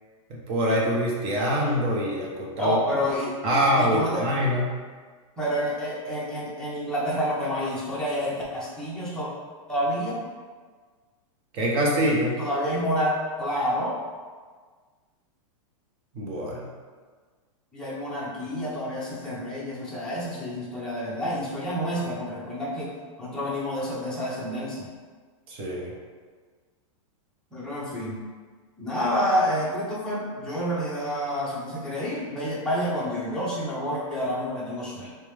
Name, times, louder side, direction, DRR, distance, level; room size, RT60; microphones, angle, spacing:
voice 1, 0.3-2.8 3.4-4.7 11.5-12.4 16.1-16.7 25.5-25.9, equal, 30° right, -3 dB, 0.7 m, -24 dB
voice 2, 2.6-4.3 5.4-9.3 9.7-10.2 12.4-14.0 17.7-22.9 23.2-24.9 27.5-28.2 28.8-35.1, equal, 5° left, -8 dB, 0.8 m, -28 dB
4.9 x 2.1 x 3.3 m, 1.5 s
supercardioid pair, 150°, 17 cm